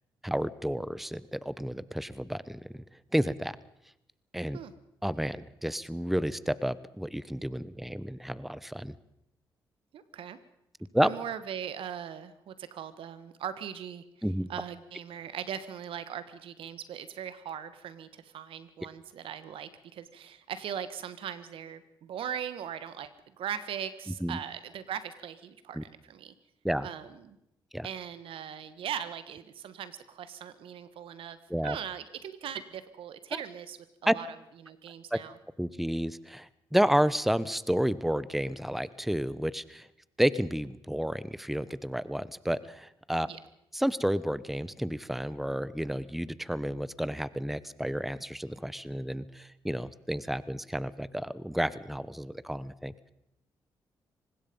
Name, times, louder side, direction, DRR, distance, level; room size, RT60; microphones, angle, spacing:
voice 1, 0.2-2.8 3.1-3.6 4.3-4.6 5.0-8.9 10.9-11.1 14.2-14.5 24.2-24.4 25.7-25.8 26.6-26.9 27.7-27.9 31.5-31.8 33.3-33.4 34.0-34.1 35.1-35.2 35.6-39.9 40.2-43.3 43.7-53.1, equal, ahead, 17 dB, 1.0 m, -31 dB
voice 2, 9.9-10.4 11.0-14.0 14.5-26.3 26.8-27.4 27.8-31.4 31.6-34.3 34.6-35.3 43.2-43.4, right 9 dB, 80° right, 13 dB, 1.6 m, -39 dB
24.0 x 20.0 x 5.4 m, 0.83 s
supercardioid pair, 60°, 9 cm